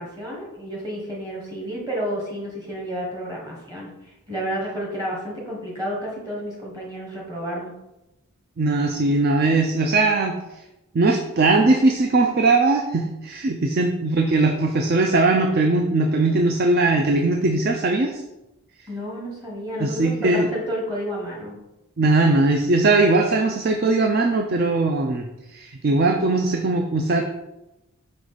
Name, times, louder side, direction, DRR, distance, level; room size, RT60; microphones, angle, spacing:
voice 1, 0.0-7.7 18.9-21.6, equal, 15° right, -3 dB, 1.2 m, -31 dB
voice 2, 8.6-10.4 10.9-18.2 19.8-20.5 22.0-25.3 25.5-27.2, right 2 dB, 45° right, 3 dB, 0.4 m, -20 dB
5.1 x 4.8 x 4.0 m, 0.95 s
head